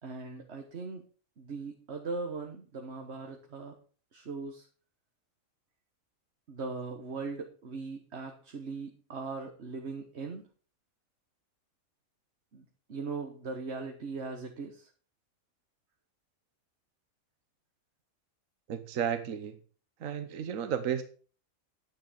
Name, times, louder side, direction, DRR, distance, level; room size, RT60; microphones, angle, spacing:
voice 1, 0.0-1.0 1.4-3.8 4.1-4.7 6.5-10.4 12.5-14.9, right 4 dB, 50° right, 3 dB, 1.5 m, -39 dB
voice 2, 18.7-19.6 20.0-21.0, right 8 dB, 70° right, 9 dB, 1.3 m, -33 dB
10.5 x 8.9 x 5.1 m, 0.40 s
omnidirectional pair, 1.5 m